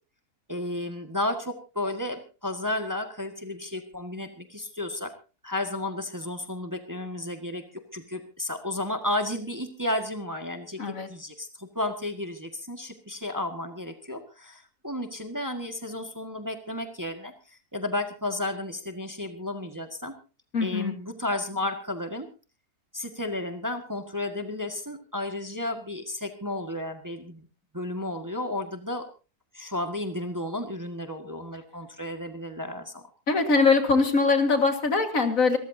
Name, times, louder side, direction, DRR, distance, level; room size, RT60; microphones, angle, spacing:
voice 1, 0.5-5.1 5.4-7.6 7.9-10.8 11.1-20.1 20.6-22.3 22.9-27.4 27.7-29.0 29.5-33.0, left 1 dB, 10° right, 6 dB, 1.6 m, -33 dB
voice 2, 10.8-11.1 20.5-20.9 33.3-35.6, left 4 dB, 55° left, 7 dB, 2.2 m, -22 dB
26.5 x 14.0 x 2.7 m, 0.32 s
omnidirectional pair, 1.7 m